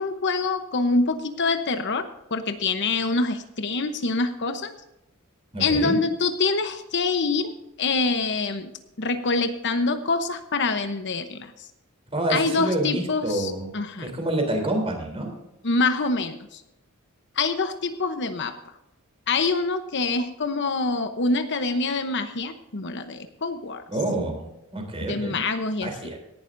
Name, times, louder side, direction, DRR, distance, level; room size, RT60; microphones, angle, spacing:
voice 1, 0.0-2.1 2.3-4.7 5.6-7.5 7.8-8.7 9.0-11.7 12.3-14.1 15.6-16.6 17.4-18.6 19.3-23.8 25.0-25.9, left 3 dB, 55° left, 8 dB, 0.9 m, -25 dB
voice 2, 5.5-6.0 12.1-13.7 14.0-15.3 23.9-25.4 25.8-26.2, right 1 dB, 25° right, 3 dB, 3.5 m, -27 dB
17.5 x 11.5 x 2.6 m, 0.90 s
head